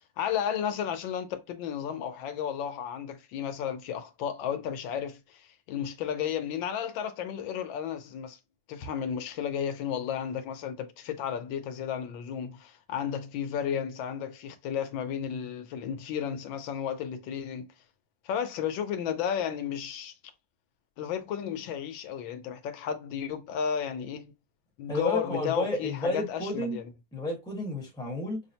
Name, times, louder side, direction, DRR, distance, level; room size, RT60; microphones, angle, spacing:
voice 1, 0.2-8.4 8.7-17.7 18.2-20.1 21.0-24.3 24.8-26.9, left 8 dB, 85° left, 1.4 m, -33 dB
voice 2, 24.9-26.8 27.1-28.4, left 1 dB, 5° left, 1.0 m, -31 dB
5.6 x 2.1 x 2.7 m
omnidirectional pair, 2.0 m